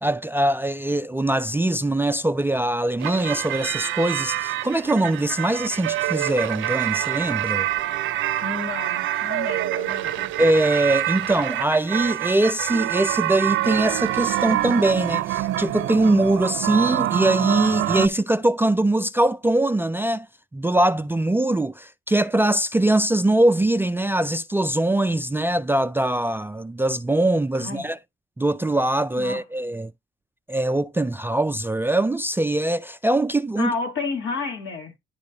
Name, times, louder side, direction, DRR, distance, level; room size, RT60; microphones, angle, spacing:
voice 1, 0.0-7.7 10.4-20.3 20.5-28.0 28.4-29.9 30.5-33.7, right 1 dB, 10° right, 0.3 m, -22 dB
sound 1, 3.0-18.1, right 14 dB, 75° right, 0.5 m, -26 dB
voice 2, 8.4-10.3 27.6-27.9 29.2-29.4 33.6-34.9, left 4 dB, 70° left, 2.6 m, -31 dB
10.5 x 3.9 x 3.0 m
cardioid pair, 90°, 20 cm